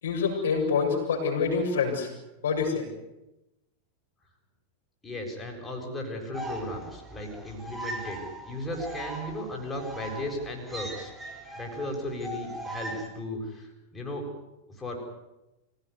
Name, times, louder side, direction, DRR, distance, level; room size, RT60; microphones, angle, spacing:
voice 1, 0.0-2.1 2.4-2.9, left 5 dB, 60° left, 0 dB, 7.3 m, -26 dB
voice 2, 5.0-11.1 11.6-14.3 14.8-15.0, left 1 dB, 15° left, 0 dB, 7.3 m, -36 dB
sound 1, 6.3-13.1, right 1 dB, 10° right, 5.8 m, -40 dB
25.5 x 17.5 x 9.7 m, 0.95 s
figure-of-eight pair, 90°, 0 cm